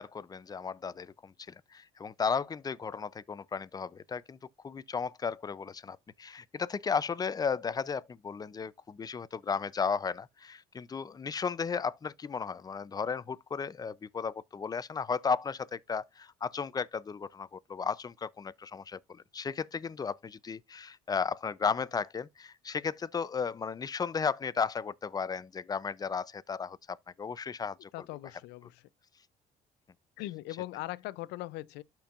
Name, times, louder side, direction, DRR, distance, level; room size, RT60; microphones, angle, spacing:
voice 1, 0.0-4.4 4.6-27.9, left 5 dB, 25° left, 0.4 m, -34 dB
voice 2, 27.9-28.8 30.2-31.8, left 17 dB, 85° left, 0.5 m, -40 dB
12.5 x 4.5 x 2.4 m
cardioid pair, 110°, 17 cm